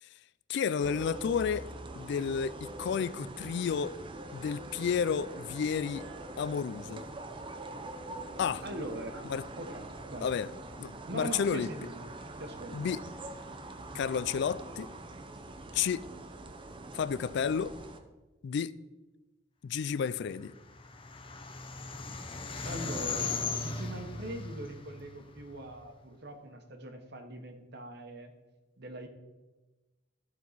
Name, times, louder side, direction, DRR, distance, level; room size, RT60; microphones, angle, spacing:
voice 1, 0.5-1.7 2.0-3.9 4.3-6.1 6.4-7.0 8.4-8.6 9.3-9.4 10.2-10.5 10.8-11.7 12.7-13.0 13.9-14.9 15.7-16.0 16.9-17.7 18.4-18.7 19.6-20.5, left 6 dB, 60° left, 0.3 m, -31 dB
sound 1, 0.8-18.0, right 2 dB, 25° right, 0.6 m, -44 dB
voice 2, 8.6-9.3 9.6-10.3 11.1-12.1 12.4-12.8 22.6-28.3 28.8-29.1, right 1 dB, 55° right, 1.2 m, -41 dB
sound 2, 20.4-25.8, left 4 dB, 25° left, 0.7 m, -38 dB
14.0 x 4.6 x 4.1 m
head